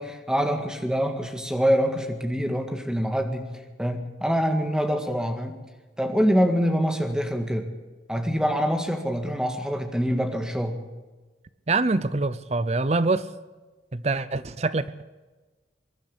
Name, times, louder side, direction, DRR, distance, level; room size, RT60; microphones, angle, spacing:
voice 1, 0.0-3.5 3.8-5.5 6.0-7.7 8.1-10.8, equal, 5° right, 5 dB, 1.9 m, -25 dB
voice 2, 11.7-13.3 13.9-15.0, right 3 dB, 35° right, 16 dB, 0.6 m, -25 dB
22.5 x 12.0 x 9.9 m, 1.3 s
head